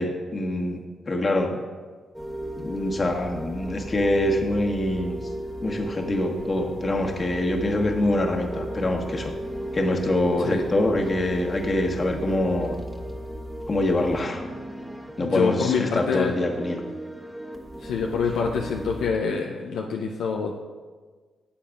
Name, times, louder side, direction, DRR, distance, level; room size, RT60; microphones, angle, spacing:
voice 1, 0.0-1.6 2.6-5.2 5.6-9.3 9.7-12.8 13.7-14.4 15.2-16.8, left 1 dB, 40° left, 2 dB, 1.3 m, -25 dB
sound 1, 2.1-19.1, equal, 10° right, 1.3 m, -35 dB
voice 2, 15.2-16.3 17.8-20.5, left 5 dB, 75° left, 0 dB, 0.5 m, -26 dB
12.5 x 8.4 x 2.4 m, 1.4 s
hypercardioid pair, 40°, 0 cm